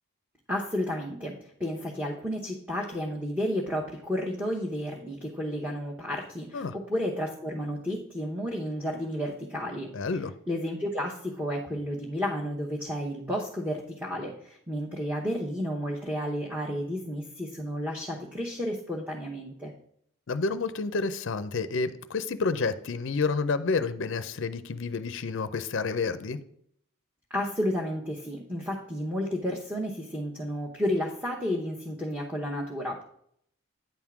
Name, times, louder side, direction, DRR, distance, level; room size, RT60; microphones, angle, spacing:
voice 1, 0.5-1.3 1.6-9.9 10.5-19.7 27.3-33.0, equal, 10° right, -3 dB, 0.8 m, -32 dB
voice 2, 9.9-10.3 20.3-26.4, left 4 dB, 55° left, 13 dB, 0.5 m, -29 dB
9.2 x 3.6 x 5.9 m, 0.68 s
head